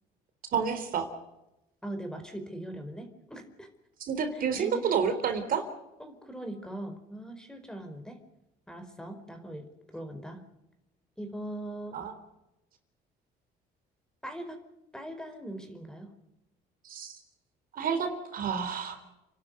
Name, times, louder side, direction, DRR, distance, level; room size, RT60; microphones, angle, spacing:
voice 1, 0.5-1.1 4.0-5.6 11.9-12.1 16.8-17.2 17.7-19.0, right 6 dB, 55° right, 7 dB, 3.8 m, -29 dB
voice 2, 1.8-3.7 4.3-4.9 6.0-8.2 8.7-10.4 11.2-12.0 14.2-14.6 14.9-16.1, right 1 dB, 5° left, 6 dB, 4.6 m, -41 dB
30.0 x 12.0 x 9.5 m, 0.91 s
cardioid pair, 110°, 17 cm